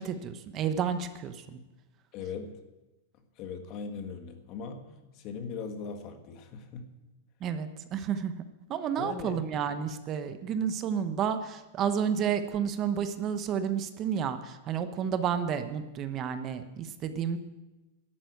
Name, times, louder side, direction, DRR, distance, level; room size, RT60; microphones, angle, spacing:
voice 1, 0.0-1.6 7.4-8.3 8.7-17.4, right 8 dB, 35° right, 10 dB, 1.0 m, -31 dB
voice 2, 2.1-2.6 3.3-6.9 8.9-9.4, left 5 dB, 45° left, 7 dB, 1.6 m, -39 dB
12.0 x 9.2 x 7.9 m, 1.1 s
supercardioid pair, 135°, 0 cm